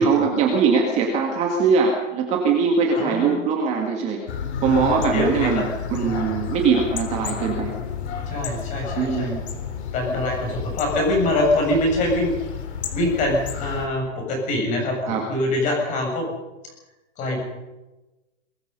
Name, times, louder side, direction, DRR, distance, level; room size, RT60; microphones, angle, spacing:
voice 1, 0.0-4.2 4.6-5.6 5.9-7.7 9.0-9.4 15.0-15.2, right 5 dB, 15° right, 1 dB, 2.2 m, -21 dB
voice 2, 2.9-3.4 4.6-5.6 5.9-6.2 8.3-9.3 9.9-12.3 12.9-16.3 17.2-17.4, left 1 dB, 20° left, 0 dB, 7.3 m, -24 dB
sound 1, 4.3-13.9, left 7 dB, 60° left, 3.9 m, -31 dB
23.0 x 22.0 x 5.5 m, 1.1 s
supercardioid pair, 180°, 38 cm